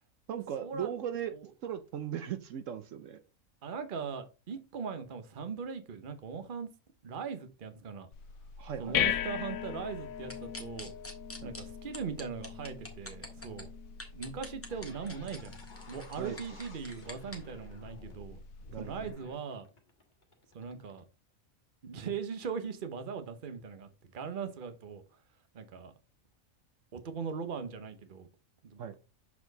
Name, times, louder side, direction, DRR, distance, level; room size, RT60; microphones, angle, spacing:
voice 1, 0.3-1.3 1.6-3.2 8.6-9.1 11.4-11.5 16.2-16.4 18.7-19.1 28.8-28.9, right 9 dB, 70° right, 1.0 m, -38 dB
voice 2, 3.6-6.7 7.0-8.1 8.8-10.9 11.4-13.7 14.1-15.6 15.9-18.4 18.8-19.7 20.5-21.0 21.8-25.0 25.5-25.9 26.9-28.3 28.6-28.8, right 6 dB, 40° right, 1.0 m, -40 dB
sound 1, 8.1-19.1, left 10 dB, 85° left, 1.1 m, -39 dB
sound 2, 10.3-11.6 11.9-13.6 14.0-17.4, left 1 dB, 10° left, 1.5 m, -44 dB
sound 3, 14.7-21.0, left 3 dB, 35° left, 1.6 m, -54 dB
7.2 x 4.3 x 3.9 m
omnidirectional pair, 1.4 m